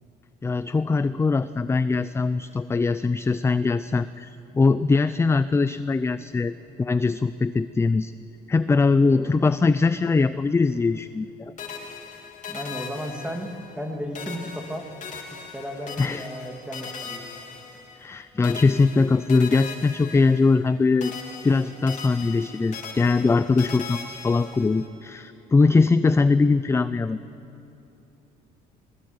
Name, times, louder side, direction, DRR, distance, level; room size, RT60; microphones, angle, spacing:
voice 1, 0.4-8.1 8.5-11.5 16.0-16.3 18.0-21.1 21.4-27.2, left 4 dB, 15° left, 13 dB, 0.4 m, -21 dB
voice 2, 9.1-9.5 12.5-14.9 15.5-17.2, equal, 5° right, 3 dB, 2.6 m, -34 dB
sound 1, 11.6-13.9 14.1-18.1 18.4-20.7 21.0-24.9, left 5 dB, 45° left, 3.7 m, -39 dB
20.5 x 20.0 x 8.1 m, 3.0 s
cardioid pair, 110°, 17 cm